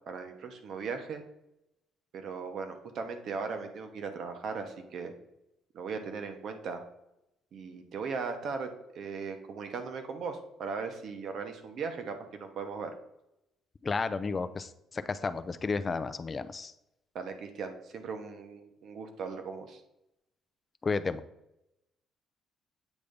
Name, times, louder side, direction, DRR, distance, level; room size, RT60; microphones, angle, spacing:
voice 1, 0.1-1.2 2.1-5.1 5.7-6.8 7.5-12.9 17.1-19.8, right 5 dB, 50° right, 7 dB, 0.9 m, -38 dB
voice 2, 13.8-16.7 20.8-21.2, left 4 dB, 20° left, 12 dB, 0.3 m, -32 dB
8.2 x 3.4 x 5.2 m, 0.85 s
cardioid pair, 170°, 0 cm